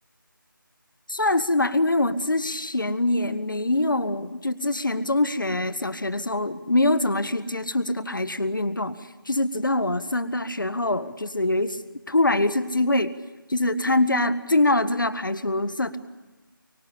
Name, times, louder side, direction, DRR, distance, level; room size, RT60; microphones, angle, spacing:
voice 1, 1.1-9.0 9.3-11.8 12.1-13.1 13.5-16.0, left 2 dB, 65° left, 13 dB, 1.6 m, -24 dB
24.0 x 24.0 x 8.6 m, 1.1 s
figure-of-eight pair, 180°, 12 cm